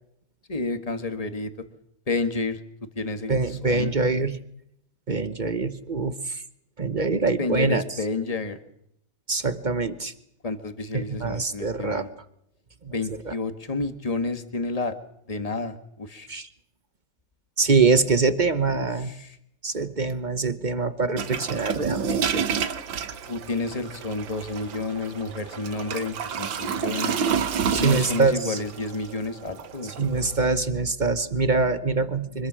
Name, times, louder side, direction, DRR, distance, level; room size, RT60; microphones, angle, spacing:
voice 1, 0.5-1.5 2.1-2.6 2.9-3.9 7.4-8.6 10.4-12.1 12.9-15.0 15.3-16.3 18.7-19.4 23.3-27.2 27.8-29.9, left 3 dB, 20° left, 8 dB, 1.6 m, -30 dB
voice 2, 3.3-4.4 5.1-6.4 6.8-7.8 9.3-10.1 10.9-12.1 12.8-12.9 13.2-13.3 16.3-16.5 17.6-19.1 19.6-22.4 27.7-28.6 30.0-32.5, right 4 dB, 35° right, 12 dB, 0.9 m, -24 dB
sound 1, 21.2-30.4, right 7 dB, 90° right, 2.0 m, -30 dB
25.0 x 21.5 x 6.3 m, 0.74 s
omnidirectional pair, 2.0 m